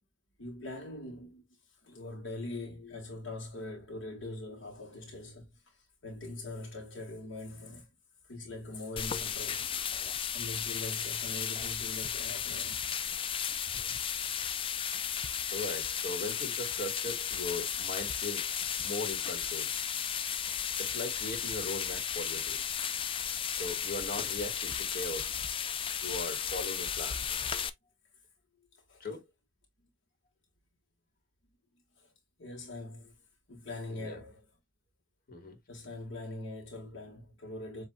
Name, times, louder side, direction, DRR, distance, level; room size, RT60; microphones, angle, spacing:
voice 1, 0.4-7.9 8.2-9.7 10.3-12.9 28.9-29.0 29.8-29.9 32.0-32.1 32.4-33.2 33.5-34.5 35.7-37.8, left 2 dB, 65° left, 1.3 m, -43 dB
sound 1, 9.0-27.7, left 8 dB, 25° left, 0.4 m, -34 dB
voice 2, 15.5-18.5 18.8-19.7 20.8-22.6 23.5-25.3 26.0-27.2 29.0-29.2 33.9-34.2 35.3-35.6, left 2 dB, 50° left, 1.6 m, -39 dB
7.5 x 2.7 x 2.2 m
head